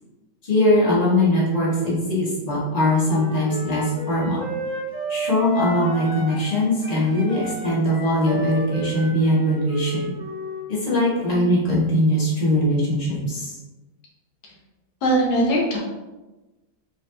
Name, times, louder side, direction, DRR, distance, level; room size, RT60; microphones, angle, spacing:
voice 1, 0.4-4.4 5.1-10.1 10.7-13.5, left 1 dB, 25° left, -7 dB, 1.3 m, -21 dB
Wind instrument woodwind instrument, 3.0-6.6 6.8-10.7, equal, 10° right, 0.6 m, -32 dB
voice 2, 15.0-15.8, right 1 dB, 75° left, -3 dB, 1.4 m, -20 dB
5.0 x 3.3 x 2.6 m, 1.1 s
omnidirectional pair, 1.7 m